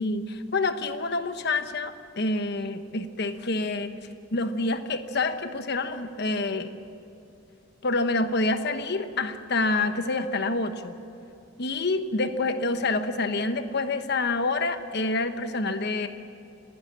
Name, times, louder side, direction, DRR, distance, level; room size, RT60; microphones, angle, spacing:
voice 1, 0.0-3.9 4.3-6.7 7.8-11.0 11.6-16.1, left 2 dB, 55° left, 9 dB, 1.2 m, -27 dB
28.5 x 10.5 x 10.0 m, 2.7 s
head